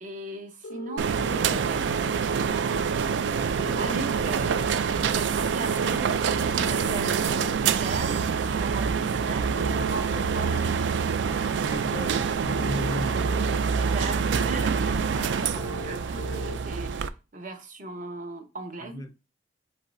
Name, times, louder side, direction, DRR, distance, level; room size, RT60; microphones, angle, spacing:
voice 1, 0.0-2.9 3.4-4.8 5.0-10.6 13.6-19.0, right 3 dB, 45° right, 0.9 m, -38 dB
sound 1, 0.6-1.6 3.6-4.6 6.6-7.6 9.6-10.6 12.6-13.6 15.6-16.6, left 1 dB, 85° left, 0.4 m, -39 dB
sound 2, 1.0-17.1, right 6 dB, 80° right, 0.4 m, -26 dB
sound 3, 4.3-16.6, right 1 dB, 15° right, 0.6 m, -45 dB
voice 2, 11.6-13.3 18.8-19.1, left 2 dB, 20° left, 0.3 m, -35 dB
5.2 x 3.9 x 2.5 m
head